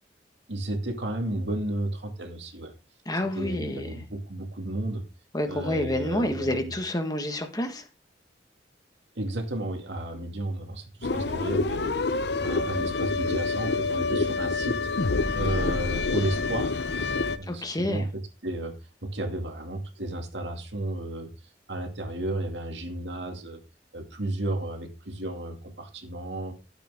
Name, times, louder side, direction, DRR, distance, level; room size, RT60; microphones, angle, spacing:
voice 1, 0.5-2.7 3.3-5.0 5.5-6.7 9.2-12.2 12.4-14.8 15.3-16.8 17.4-18.1 18.4-18.8 19.0-21.3 21.7-23.6 23.9-26.5, right 1 dB, 80° right, 2.4 m, -33 dB
voice 2, 3.0-4.0 5.3-7.9 17.5-18.1, left 1 dB, 20° left, 1.6 m, -29 dB
sound 1, 11.0-17.4, left 3 dB, 65° left, 0.7 m, -27 dB
13.0 x 8.3 x 3.6 m
head